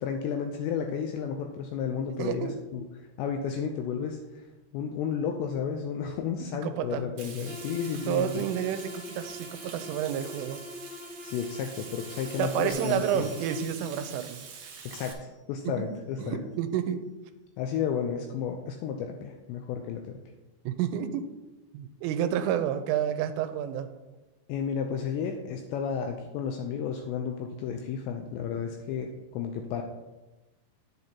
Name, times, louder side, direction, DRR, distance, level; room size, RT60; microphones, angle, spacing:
voice 1, 0.0-2.9 3.2-4.2 4.7-8.5 11.2-13.3 14.9-15.1 15.5-16.5 17.6-20.2 24.5-29.8, left 7 dB, 85° left, 3 dB, 2.5 m, -32 dB
voice 2, 2.2-2.6 6.6-7.1 8.1-10.6 12.4-14.7 15.6-15.9 16.2-17.1 20.7-21.3 21.7-23.9, right 9 dB, 85° right, 9 dB, 3.1 m, -30 dB
Frying (food), 7.2-15.1, right 6 dB, 70° right, 2.1 m, -45 dB
sound 1, 7.4-13.7, left 2 dB, 35° left, 2.0 m, -44 dB
Bell, 12.7-15.9, left 1 dB, 60° left, 1.9 m, -50 dB
10.5 x 7.7 x 2.8 m, 1.1 s
omnidirectional pair, 5.6 m